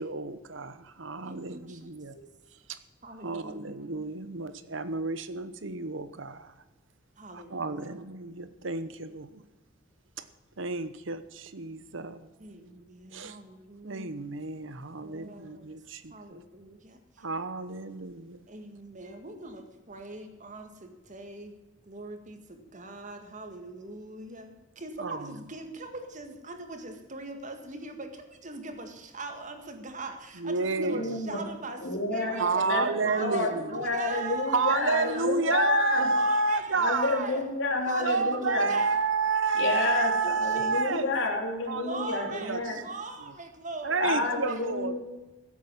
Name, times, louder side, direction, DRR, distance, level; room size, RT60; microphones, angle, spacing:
voice 1, 0.0-2.2 2.7-2.8 3.1-6.5 7.3-9.4 10.6-12.3 13.1-13.4 13.8-16.4 17.2-18.4 25.0-25.3 30.4-31.2 32.4-33.7 34.5-37.3 38.0-41.1 41.7-42.6 43.8-45.0, right 4 dB, 70° right, 13 dB, 1.0 m, -30 dB
voice 2, 1.2-1.8 3.0-3.8 7.2-7.8 12.4-14.1 15.0-15.6 16.1-17.0 18.5-21.5 21.9-28.1 28.4-31.8 32.1-32.7 33.0-35.3 35.9-37.5 37.9-39.0 39.9-41.0 41.6-44.7, right 3 dB, 40° right, 6 dB, 1.9 m, -41 dB
voice 3, 30.9-31.4 31.8-36.1 36.7-38.7 39.6-40.1 40.4-42.8 44.0-45.0, left 3 dB, 65° left, 1 dB, 3.4 m, -29 dB
15.5 x 8.5 x 7.5 m, 1.1 s
head